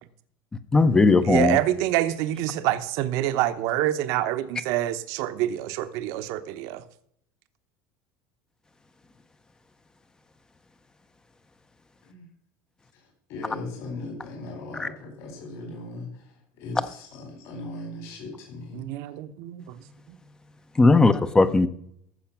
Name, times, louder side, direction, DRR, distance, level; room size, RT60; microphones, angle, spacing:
voice 1, 0.7-1.6 14.8-14.9 20.8-21.7, left 3 dB, 10° left, 12 dB, 0.6 m, -18 dB
voice 2, 1.2-6.8 18.7-19.8 20.1-20.2, right 13 dB, 65° right, 11 dB, 0.9 m, -26 dB
voice 3, 12.9-18.9, left 2 dB, 60° left, 1 dB, 4.5 m, -38 dB
14.0 x 6.4 x 5.9 m, 0.70 s
cardioid pair, 150°, 6 cm